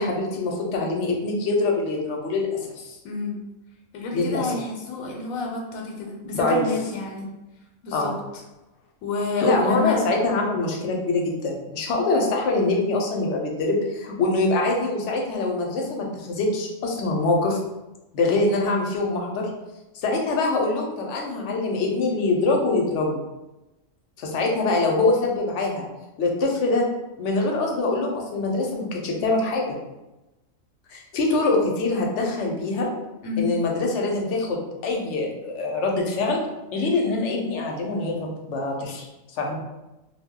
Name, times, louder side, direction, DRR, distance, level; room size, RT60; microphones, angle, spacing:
voice 1, 0.0-3.0 4.1-4.5 6.3-6.6 7.9-8.1 9.4-17.6 18.1-19.5 20.0-23.2 24.2-25.8 26.2-26.9 27.2-29.8 30.9-32.9 33.4-36.4 36.7-39.1 39.3-39.5, left 2 dB, 65° left, 0 dB, 0.8 m, -24 dB
voice 2, 3.0-3.4 3.9-7.2 7.8-8.1 9.0-10.0 33.2-33.5, left 4 dB, 90° left, 0 dB, 1.0 m, -29 dB
2.3 x 2.1 x 3.5 m, 1.0 s
omnidirectional pair, 1.4 m